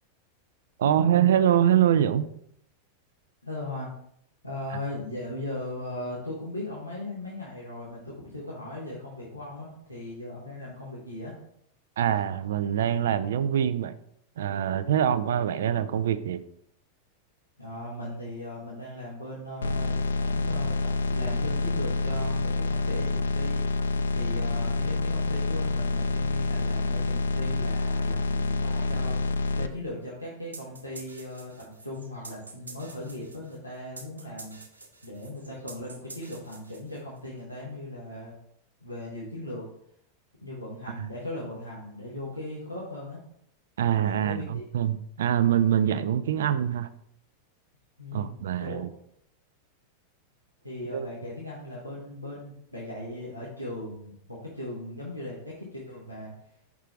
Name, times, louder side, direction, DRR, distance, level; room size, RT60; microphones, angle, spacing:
voice 1, 0.8-2.3 12.0-13.9 14.4-16.4 43.8-46.9 48.1-48.9 50.9-51.1, right 10 dB, 60° right, 13 dB, 0.4 m, -24 dB
voice 2, 3.4-3.9 4.4-11.3 17.6-23.6 24.1-34.6 35.0-38.4 38.8-39.7 40.4-43.2 43.9-44.6 48.0-48.8 50.6-56.3, left 1 dB, 90° left, -7 dB, 1.4 m, -38 dB
sound 1, 19.6-29.7, left 3 dB, 70° left, 0.3 m, -27 dB
sound 2, 30.5-37.2, right 3 dB, 80° right, 0.8 m, -47 dB
5.6 x 4.7 x 3.8 m, 0.70 s
figure-of-eight pair, 90°, 0 cm